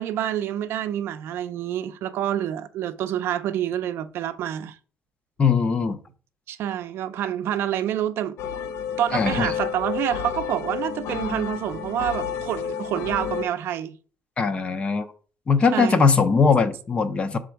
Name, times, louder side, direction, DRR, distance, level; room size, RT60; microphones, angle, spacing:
voice 1, 0.0-4.8 6.5-8.4 9.0-14.0 15.7-16.0, right 11 dB, 65° right, 0.5 m, -27 dB
voice 2, 5.4-6.0 9.1-9.5 14.4-15.0 15.5-17.4, left 5 dB, 25° left, 0.6 m, -20 dB
sound 1, 8.4-13.4, left 7 dB, 75° left, 0.5 m, -31 dB
6.1 x 3.7 x 4.5 m
cardioid pair, 160°, 4 cm